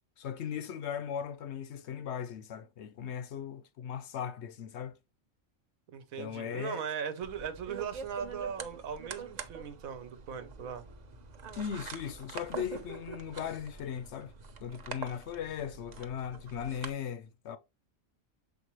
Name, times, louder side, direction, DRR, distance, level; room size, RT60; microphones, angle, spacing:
voice 1, 0.2-5.0 6.2-6.8 11.6-14.3 14.6-17.6, left 8 dB, 65° left, 0.7 m, -38 dB
voice 2, 5.9-10.8, right 7 dB, 90° right, 1.4 m, -39 dB
sound 1, 7.2-16.9, right 5 dB, 40° right, 0.7 m, -45 dB
7.1 x 4.5 x 3.1 m
omnidirectional pair, 1.4 m